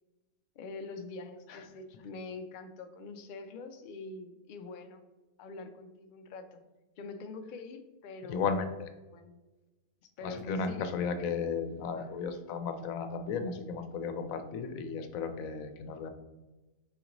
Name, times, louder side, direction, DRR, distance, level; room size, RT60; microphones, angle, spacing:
voice 1, 0.6-5.0 5.4-6.6 7.0-8.5 9.1-9.4 10.0-11.3 12.0-12.1, left 3 dB, 70° left, 7 dB, 0.4 m, -44 dB
voice 2, 8.3-8.9 10.2-16.1, left 5 dB, 90° left, 8 dB, 1.0 m, -34 dB
4.1 x 3.8 x 2.9 m, 1.1 s
omnidirectional pair, 1.4 m